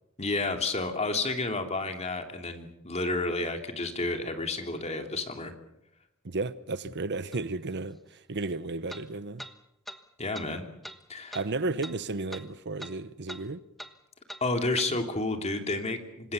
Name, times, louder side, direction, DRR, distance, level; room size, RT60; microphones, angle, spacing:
voice 1, 0.2-5.5 10.2-10.6 11.1-11.4 14.4-16.3, left 2 dB, 30° left, 2.9 m, -31 dB
voice 2, 6.2-9.5 11.3-13.6, right 3 dB, 55° right, 0.9 m, -33 dB
sound 1, 7.3-7.4 8.9-9.0 9.4-9.5 9.9-10.0 10.3-10.5 10.8-11.0 11.3-11.5 11.8-12.0 12.3-12.5 12.8-12.9 13.3-13.4 13.8-13.9 14.3-14.4 14.8-14.9, equal, ahead, 1.3 m, -42 dB
26.0 x 20.5 x 7.0 m
head